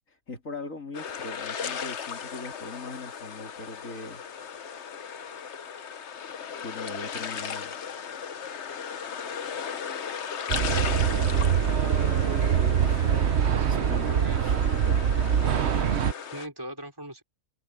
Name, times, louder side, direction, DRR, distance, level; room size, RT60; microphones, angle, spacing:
voice 1, 0.1-4.2 6.6-7.7 12.8-13.2 13.7-14.1 14.4-14.6 14.9-15.0 15.7-15.9, left 3 dB, 80° left, 3.6 m, -40 dB
sound 1, 0.9-16.5, left 7 dB, 60° left, 1.3 m, -36 dB
sound 2, 10.5-16.1, right 8 dB, 60° right, 1.1 m, -24 dB
voice 2, 11.4-11.8 13.6-14.5 16.3-17.2, right 1 dB, 15° right, 4.5 m, -40 dB
omnidirectional pair, 1.4 m